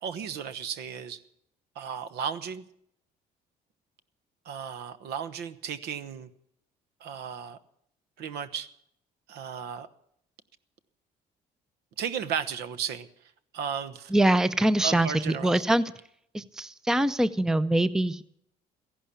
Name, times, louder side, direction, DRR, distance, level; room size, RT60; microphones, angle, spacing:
voice 1, 0.0-1.2 1.8-2.6 4.4-6.3 7.0-7.6 8.2-8.7 9.3-9.9 12.0-13.1 13.5-14.1 14.8-15.6, right 7 dB, 75° right, 12 dB, 1.1 m, -34 dB
voice 2, 14.1-15.1 15.4-15.8 16.3-18.2, right 1 dB, 5° right, 15 dB, 0.5 m, -23 dB
15.0 x 11.5 x 8.4 m, 0.70 s
cardioid pair, 110°, 17 cm